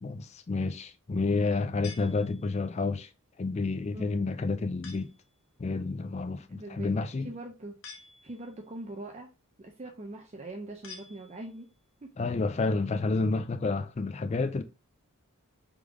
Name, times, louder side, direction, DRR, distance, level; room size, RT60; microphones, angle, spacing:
voice 1, 0.0-3.1 3.4-5.1 5.6-7.3 12.2-14.6, left 3 dB, 30° left, 0.3 m, -30 dB
sound 1, 1.8-2.8 4.8-5.3 7.8-8.7 10.8-11.7, left 5 dB, 60° left, 0.9 m, -49 dB
voice 2, 6.5-6.9 7.2-7.8 8.2-9.3 9.6-11.7 12.0-12.1, right 2 dB, 30° right, 0.5 m, -42 dB
3.6 x 3.3 x 3.4 m
head